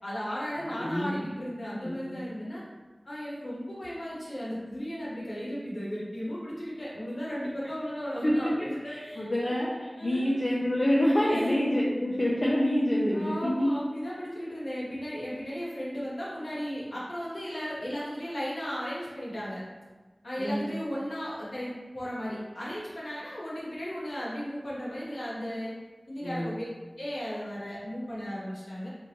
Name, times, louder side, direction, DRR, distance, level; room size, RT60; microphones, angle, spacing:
voice 1, 0.0-2.6 3.0-9.6 10.0-10.3 11.2-11.6 13.1-19.6 20.2-25.7 26.1-26.7 27.0-28.9, equal, 85° left, -7 dB, 1.1 m, -35 dB
voice 2, 0.6-1.3 1.8-2.2 8.2-8.5 8.9-13.7 20.4-20.8 26.2-26.6, equal, 55° left, -6 dB, 0.6 m, -27 dB
3.6 x 2.7 x 3.0 m, 1.3 s
wide cardioid pair, 45°, 0 cm